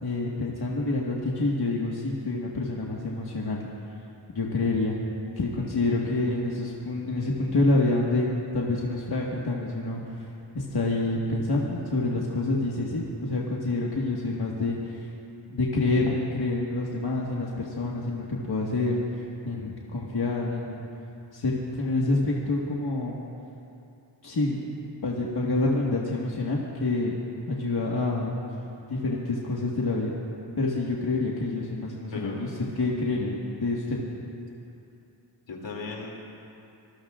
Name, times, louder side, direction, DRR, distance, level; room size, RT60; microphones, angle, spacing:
voice 1, 0.0-3.6 4.3-5.0 5.4-10.0 10.5-15.1 15.5-20.9 21.3-23.2 24.2-24.6 25.0-27.2 27.5-28.4 28.9-30.1 30.6-32.5 32.8-34.0, left 2 dB, 60° left, -3 dB, 1.7 m, -27 dB
voice 2, 32.1-32.8 35.5-36.1, left 3 dB, 80° left, -2 dB, 2.9 m, -37 dB
25.5 x 20.5 x 2.5 m, 2.7 s
wide cardioid pair, 95°, 43 cm